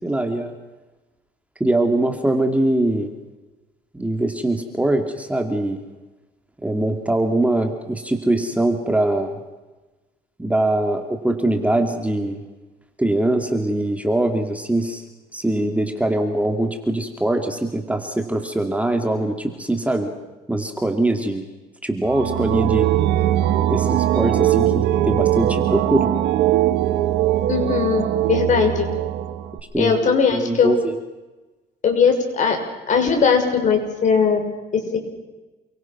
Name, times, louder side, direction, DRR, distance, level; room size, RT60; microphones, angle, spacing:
voice 1, 0.0-0.5 1.6-3.1 3.9-5.8 6.6-9.4 10.4-12.4 13.0-15.0 15.3-20.1 20.5-21.5 21.8-22.9 23.7-26.1 29.7-31.0, right 1 dB, 10° right, 4 dB, 2.6 m, -22 dB
sound 1, 22.0-29.6, right 13 dB, 85° right, 2.0 m, -20 dB
voice 2, 27.5-28.9 29.8-30.8 31.8-32.6 32.9-34.5 34.9-35.0, left 6 dB, 45° left, 4 dB, 6.5 m, -19 dB
29.0 x 24.0 x 6.2 m, 1.2 s
cardioid pair, 110°, 17 cm